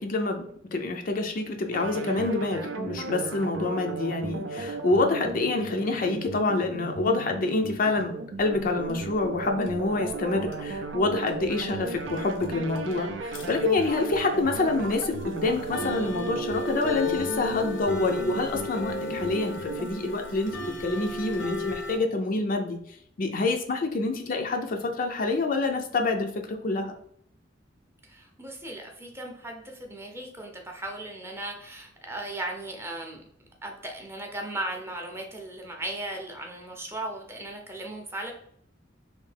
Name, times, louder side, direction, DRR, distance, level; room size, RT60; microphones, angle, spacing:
voice 1, 0.0-8.1 8.4-26.9, left 3 dB, 45° left, 4 dB, 0.4 m, -27 dB
sound 1, 1.7-19.9, right 3 dB, 65° right, 0.4 m, -36 dB
sound 2, 8.4-10.2 10.5-11.0 11.3-22.0, left 2 dB, 80° left, 0.7 m, -35 dB
voice 2, 28.0-33.2 33.6-38.3, right 1 dB, 15° right, 1 dB, 0.6 m, -37 dB
3.2 x 2.7 x 3.3 m, 0.65 s
head